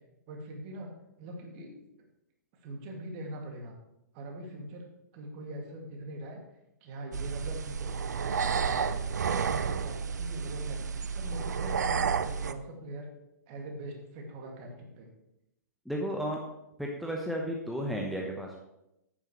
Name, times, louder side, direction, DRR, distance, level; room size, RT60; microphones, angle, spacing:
voice 1, 0.3-0.9 1.2-1.8 2.6-3.7 4.1-4.8 5.1-6.4 6.8-7.9 8.2-9.1 9.4-10.8 11.1-13.1 13.5-15.1, right 1 dB, 40° right, 1 dB, 2.3 m, -42 dB
sound 1, 7.1-12.5, right 6 dB, 70° right, 0.6 m, -31 dB
voice 2, 15.9-16.4 16.8-18.6, equal, ahead, -1 dB, 1.0 m, -33 dB
10.5 x 9.0 x 3.2 m, 0.86 s
figure-of-eight pair, 115°, 10 cm